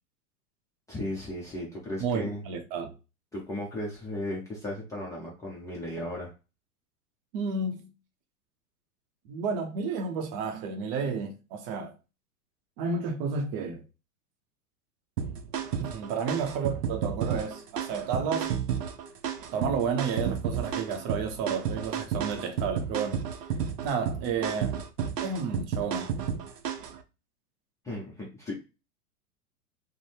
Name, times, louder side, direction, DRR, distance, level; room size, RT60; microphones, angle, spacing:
voice 1, 0.9-2.4 3.3-6.3 27.8-28.5, left 1 dB, 5° left, 0.4 m, -35 dB
voice 2, 2.0-2.9 7.3-7.9 9.3-11.9 12.8-13.8 15.8-18.5 19.5-23.2 23.8-24.8 25.2-26.1, right 5 dB, 40° right, 0.6 m, -31 dB
sound 1, 15.2-27.0, right 7 dB, 85° right, 0.6 m, -32 dB
2.6 x 2.0 x 3.2 m
hypercardioid pair, 105°, 46 cm